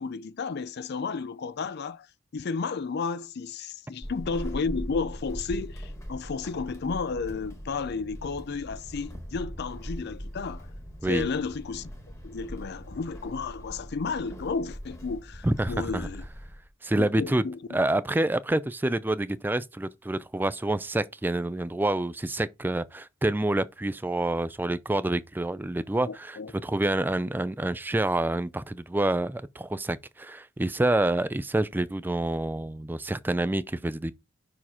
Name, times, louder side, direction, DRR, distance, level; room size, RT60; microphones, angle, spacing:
voice 1, 0.0-2.1 2.3-10.7 11.0-11.9 12.2-16.3 17.0-17.8 26.1-26.5, left 4 dB, 50° left, 0.4 m, -32 dB
Walk footsteps / Squeak, 4.0-16.7, equal, 15° left, 1.5 m, -40 dB
voice 2, 15.4-16.1 16.8-17.5 17.7-34.1, right 1 dB, 10° right, 0.4 m, -27 dB
5.8 x 4.8 x 4.9 m
head